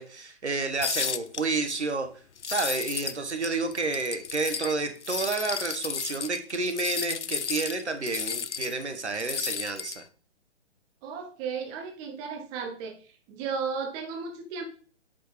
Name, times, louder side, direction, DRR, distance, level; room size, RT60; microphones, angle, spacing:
voice 1, 0.0-10.0, right 3 dB, 75° right, 7 dB, 1.4 m, -30 dB
sound 1, 0.8-1.4 2.4-3.2 3.4-4.7 5.0-8.8 9.2-10.0, left 6 dB, 85° left, 0.5 m, -33 dB
voice 2, 11.0-13.0 13.3-14.6, right 5 dB, 15° right, 4 dB, 0.8 m, -34 dB
9.0 x 4.7 x 3.2 m, 0.40 s
figure-of-eight pair, 130°, 34 cm